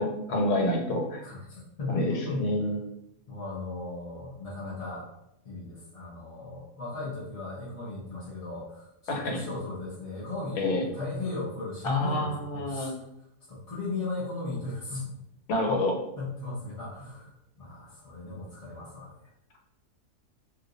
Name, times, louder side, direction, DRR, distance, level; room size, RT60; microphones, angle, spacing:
voice 1, 0.0-1.2 1.9-2.8 9.1-9.4 10.6-10.8 11.8-12.9 15.5-16.0, left 1 dB, 80° left, 1 dB, 1.3 m, -28 dB
voice 2, 1.2-2.5 3.3-5.1 5.4-8.9 9.1-12.9 13.5-15.1 15.7-15.8 16.2-19.2, left 3 dB, 40° left, -8 dB, 0.5 m, -36 dB
2.8 x 2.3 x 3.8 m, 0.82 s
omnidirectional pair, 1.6 m